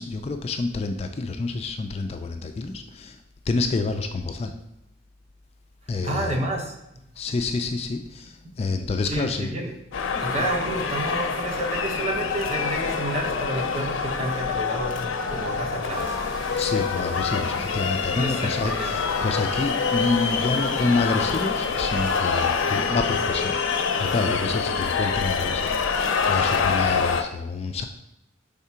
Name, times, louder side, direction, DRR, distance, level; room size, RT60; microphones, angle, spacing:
voice 1, 0.0-3.2 3.5-4.6 5.9-6.4 7.2-9.5 10.1-10.4 16.6-23.5 24.0-27.9, left 3 dB, 30° left, 6 dB, 0.3 m, -28 dB
voice 2, 6.0-6.7 9.0-9.7 10.2-16.2 18.2-18.9 20.6-20.9, right 1 dB, 35° right, 1 dB, 1.0 m, -30 dB
sound 1, 9.9-27.2, left 5 dB, 85° left, 0.5 m, -26 dB
sound 2, 15.9-22.9, right 2 dB, 90° right, 1.3 m, -45 dB
4.8 x 3.6 x 5.6 m, 0.87 s
head